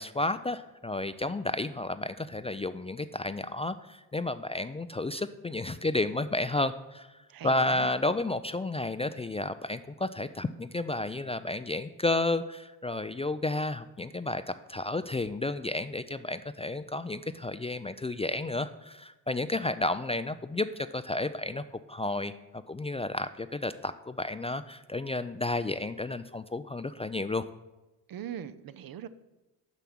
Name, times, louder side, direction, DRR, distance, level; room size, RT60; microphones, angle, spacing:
voice 1, 0.0-7.1 7.4-14.4 14.7-21.6 21.9-27.4, left 2 dB, 15° left, 11 dB, 0.3 m, -32 dB
voice 2, 7.3-7.9 28.1-29.1, right 10 dB, 60° right, 13 dB, 0.6 m, -40 dB
6.8 x 5.8 x 6.2 m, 1.1 s
supercardioid pair, 50°, 41 cm